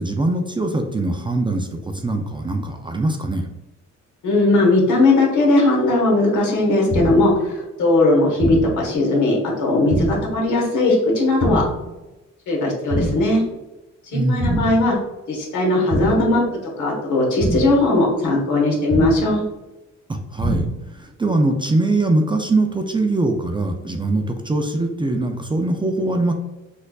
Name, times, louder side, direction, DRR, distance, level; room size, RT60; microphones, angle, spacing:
voice 1, 0.0-3.5 14.1-14.7 20.1-20.7 20.9-26.3, right 2 dB, 15° right, 4 dB, 0.4 m, -22 dB
voice 2, 4.2-11.6 12.5-13.4 14.1-15.0 15.3-19.4, left 2 dB, 75° left, -1 dB, 1.2 m, -18 dB
sound 1, 6.9-7.4 8.4-8.9 9.9-10.4 11.4-11.9 12.9-13.4 14.4-14.9 15.9-16.4 17.4-17.9 18.9-19.4 20.4-20.9, right 1 dB, 35° right, 1.0 m, -24 dB
4.3 x 2.5 x 2.3 m, 1.0 s
cardioid pair, 90°, 30 cm